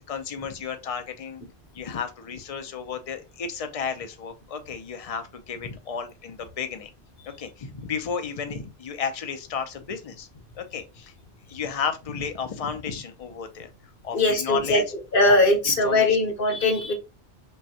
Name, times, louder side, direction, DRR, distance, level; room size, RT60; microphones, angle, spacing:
voice 1, 0.0-1.4 1.7-6.9 7.3-11.1 11.5-13.7 14.0-14.8 15.3-15.4 15.7-16.2, left 6 dB, 40° left, 0.6 m, -33 dB
voice 2, 14.1-14.8 15.1-16.9, left 2 dB, 60° left, 1.2 m, -20 dB
5.4 x 2.2 x 2.7 m
omnidirectional pair, 1.1 m